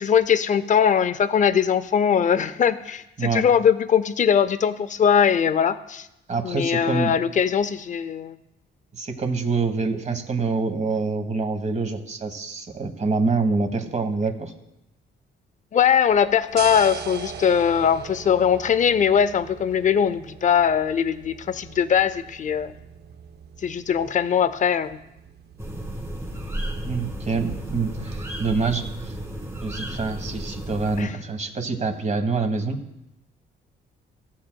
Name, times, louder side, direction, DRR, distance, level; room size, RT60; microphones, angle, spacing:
voice 1, 0.0-6.1 6.4-8.4 15.7-22.7 23.6-25.0 31.0-31.1, left 8 dB, 40° left, 13 dB, 0.5 m, -21 dB
voice 2, 6.3-7.1 8.9-14.5 26.8-29.1 29.6-32.8, right 4 dB, 35° right, 6 dB, 1.3 m, -26 dB
sound 1, 16.1-28.2, right 7 dB, 55° right, 0.6 m, -40 dB
sound 2, 25.6-31.0, right 1 dB, 15° right, 1.9 m, -33 dB
14.5 x 7.5 x 2.3 m, 0.86 s
cardioid pair, 90°, 20 cm